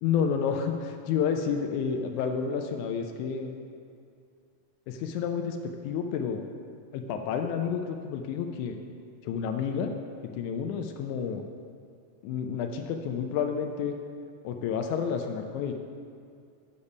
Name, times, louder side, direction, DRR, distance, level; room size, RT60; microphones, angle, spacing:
voice 1, 0.0-3.6 4.9-6.4 6.9-8.8 9.2-9.9 10.3-11.4 12.2-14.0 14.4-15.7, left 7 dB, 90° left, 4 dB, 1.7 m, -30 dB
7.1 x 6.9 x 5.3 m, 2.4 s
omnidirectional pair, 4.1 m